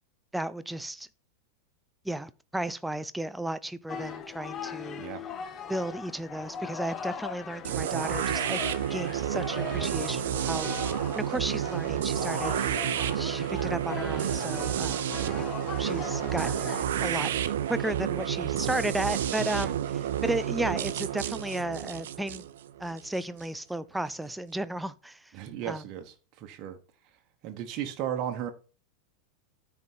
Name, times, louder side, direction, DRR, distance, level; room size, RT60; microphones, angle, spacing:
voice 1, 0.3-1.1 2.0-5.0 5.7-8.6 8.9-10.7 11.1-12.8 13.1-15.1 15.4-17.3 17.7-22.4 22.8-25.3 25.7-25.8, right 1 dB, 5° right, 0.5 m, -34 dB
sound 1, 3.9-16.8, left 7 dB, 25° left, 0.9 m, -40 dB
sound 2, 7.6-23.5, right 10 dB, 60° right, 0.7 m, -30 dB
voice 2, 25.3-26.8 27.4-28.5, right 10 dB, 40° right, 1.2 m, -35 dB
9.4 x 4.6 x 5.6 m
figure-of-eight pair, 90°, 0 cm